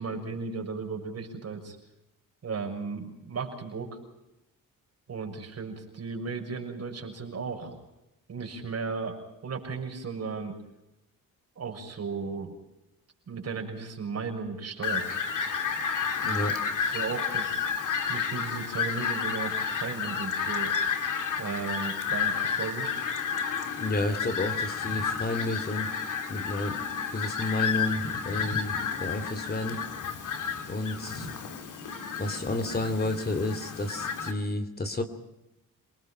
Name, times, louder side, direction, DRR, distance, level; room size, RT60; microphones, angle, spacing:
voice 1, 0.0-1.8 2.4-4.0 5.1-7.8 8.3-9.2 9.4-10.5 11.6-12.5 13.3-15.1 16.2-16.4 16.9-17.7 18.1-20.7 21.4-23.0, right 5 dB, 45° right, 3 dB, 6.5 m, -35 dB
Fowl, 14.8-34.3, left 6 dB, 60° left, 3.0 m, -31 dB
voice 2, 16.2-16.5 23.8-25.9 26.3-29.8 30.7-31.3 32.2-35.0, left 2 dB, 25° left, 8 dB, 2.8 m, -31 dB
29.0 x 20.0 x 5.7 m, 0.91 s
cardioid pair, 95°, 34 cm